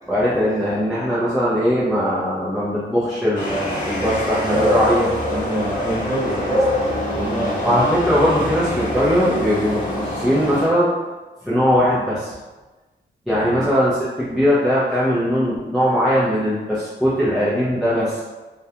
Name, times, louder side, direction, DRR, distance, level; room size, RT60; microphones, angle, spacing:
voice 1, 0.1-5.1 6.4-6.5 7.6-10.9 11.4-12.3 13.3-18.2, equal, ahead, -10 dB, 0.4 m, -20 dB
sound 1, 3.3-10.7, left 1 dB, 40° left, 0.7 m, -24 dB
voice 2, 5.3-7.9 13.3-13.7, equal, 15° right, -7 dB, 0.8 m, -28 dB
2.3 x 2.1 x 2.7 m, 1.2 s
wide cardioid pair, 140°, 19 cm